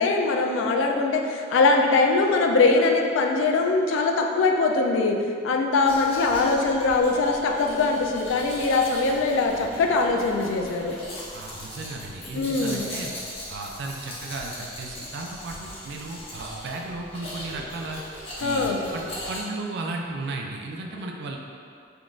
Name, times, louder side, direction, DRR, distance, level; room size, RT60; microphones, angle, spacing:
voice 1, 0.0-11.0 12.3-12.9 18.4-18.8, left 3 dB, 75° left, 2 dB, 0.3 m, -22 dB
Domestic sounds home sounds, 5.8-19.4, left 1 dB, 30° left, 0.7 m, -39 dB
voice 2, 11.3-13.1 13.5-18.0 18.4-19.0 19.3-21.4, right 3 dB, 60° right, 1 dB, 0.3 m, -35 dB
3.6 x 2.4 x 2.4 m, 2.4 s
head